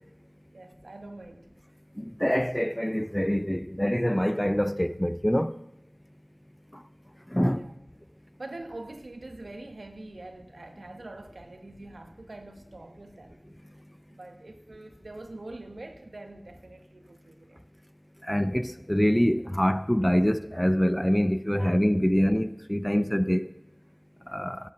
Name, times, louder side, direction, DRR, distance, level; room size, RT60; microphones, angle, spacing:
voice 1, 0.5-1.5 7.5-7.7 8.4-13.4 14.1-17.6 21.5-21.8, right 2 dB, 80° right, 1.2 m, -44 dB
voice 2, 2.0-5.5 7.3-7.6 18.3-23.5 24.3-24.6, equal, 10° left, 0.5 m, -25 dB
10.5 x 8.5 x 5.8 m
wide cardioid pair, 50°, 0 cm